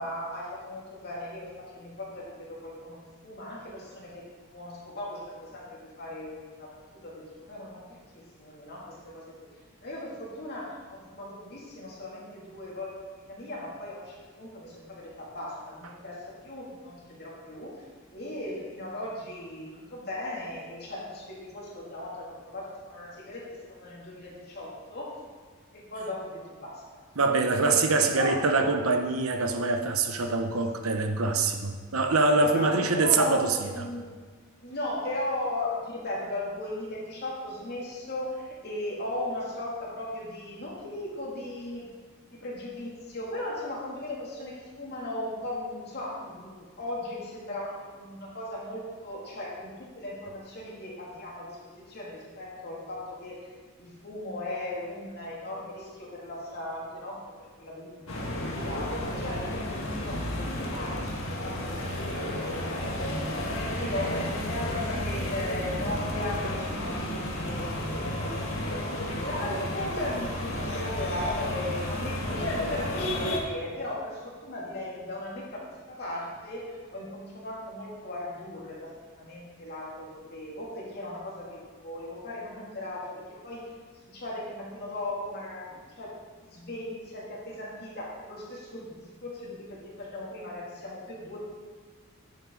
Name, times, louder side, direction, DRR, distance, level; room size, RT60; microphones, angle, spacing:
voice 1, 0.0-4.2 4.5-9.2 9.8-12.9 13.3-17.8 18.1-25.1 25.7-27.0 27.5-27.7 28.0-28.4 30.8-30.9 32.4-34.1 34.6-41.9 42.3-53.5 53.8-58.0 58.3-59.6 59.9-60.2 60.5-62.9 63.7-83.6 84.0-86.1 86.4-91.4, left 1 dB, 50° left, -5 dB, 2.6 m, -37 dB
voice 2, 27.2-33.9, right 3 dB, 80° right, 5 dB, 0.9 m, -24 dB
sound 1, 58.1-73.4, left 1 dB, 75° left, 1.6 m, -32 dB
10.5 x 7.6 x 3.9 m, 1.5 s
head